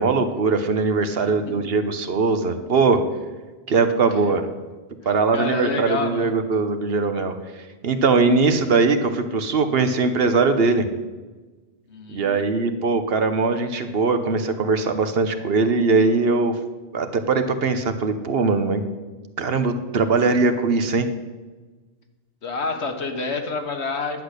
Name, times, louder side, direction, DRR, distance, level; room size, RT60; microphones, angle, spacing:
voice 1, 0.0-3.0 3.7-4.5 5.0-7.3 7.8-10.8 12.1-16.5 16.9-18.8 19.4-21.1, right 4 dB, 60° right, 8 dB, 1.1 m, -21 dB
voice 2, 5.0-6.4 11.9-12.4 22.4-24.2, left 3 dB, 80° left, 5 dB, 1.6 m, -28 dB
10.5 x 8.1 x 6.6 m, 1.3 s
omnidirectional pair, 1.1 m